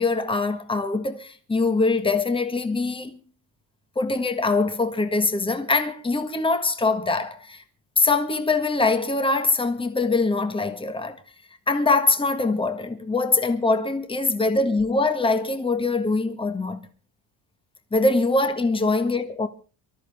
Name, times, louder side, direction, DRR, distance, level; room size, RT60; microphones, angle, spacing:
voice 1, 0.0-3.2 3.9-7.6 8.0-11.2 11.7-16.8 17.9-19.5, left 3 dB, 15° left, 1.7 m, -23 dB
24.5 x 13.5 x 3.6 m
cardioid pair, 135°, 39 cm